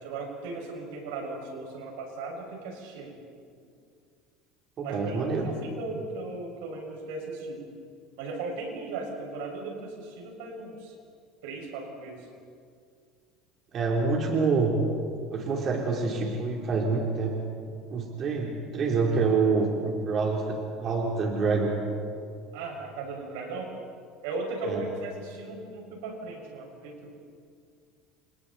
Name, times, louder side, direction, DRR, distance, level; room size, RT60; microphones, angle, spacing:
voice 1, 0.0-3.2 4.8-7.7 8.2-10.9 11.4-12.2 22.5-23.7 24.2-27.1, right 3 dB, 85° right, 1 dB, 6.0 m, -37 dB
voice 2, 4.8-5.5 13.7-14.9 15.3-17.4 17.9-21.8 24.7-24.9, right 4 dB, 40° right, -1 dB, 3.6 m, -26 dB
29.5 x 28.0 x 4.3 m, 2.2 s
cardioid pair, 135°, 0 cm